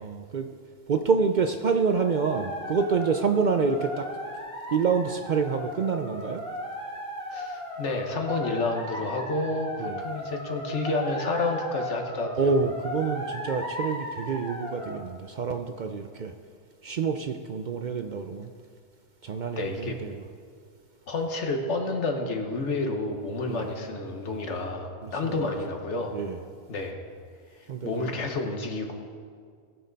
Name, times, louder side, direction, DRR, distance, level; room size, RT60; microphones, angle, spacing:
voice 1, 0.0-0.5 0.9-4.1 4.7-6.4 9.8-10.0 12.4-16.3 16.8-18.5 19.2-20.1 23.5-23.7 25.0-25.3 26.1-26.4 27.7-28.1, right 5 dB, 55° right, 7 dB, 0.5 m, -27 dB
sound 1, 1.8-15.0, equal, 5° left, 1.4 m, -36 dB
voice 2, 7.3-12.5 19.6-20.0 21.1-26.2 26.7-27.0 27.8-28.9, left 3 dB, 80° left, 3 dB, 1.5 m, -30 dB
19.5 x 6.5 x 4.0 m, 2.1 s
omnidirectional pair, 1.2 m